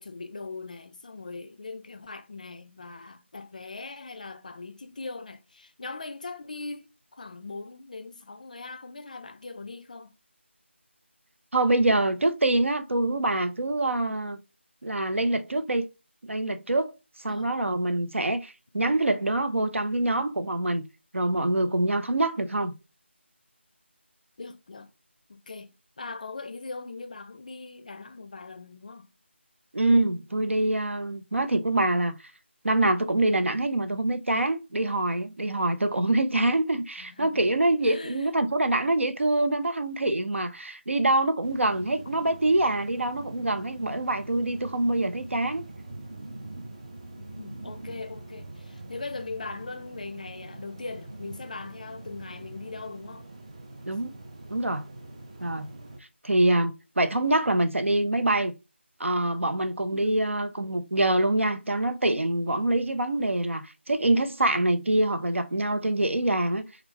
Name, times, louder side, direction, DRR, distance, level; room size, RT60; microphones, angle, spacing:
voice 1, 0.0-10.1 17.3-17.5 24.4-24.9 25.3-25.7 26.0-29.1 37.0-37.5 37.8-38.3 47.2-53.3 59.9-60.2, left 3 dB, 40° left, 0.4 m, -40 dB
voice 2, 11.5-14.4 14.8-15.9 16.3-16.9 17.2-20.8 21.1-22.7 29.7-32.1 32.6-45.6 53.9-54.1 54.5-54.8 55.4-55.7 56.2-58.5 59.0-66.6, right 2 dB, 90° right, 0.6 m, -25 dB
sound 1, 41.4-56.0, right 2 dB, 30° right, 0.5 m, -43 dB
3.3 x 2.3 x 3.4 m
figure-of-eight pair, 170°, 7 cm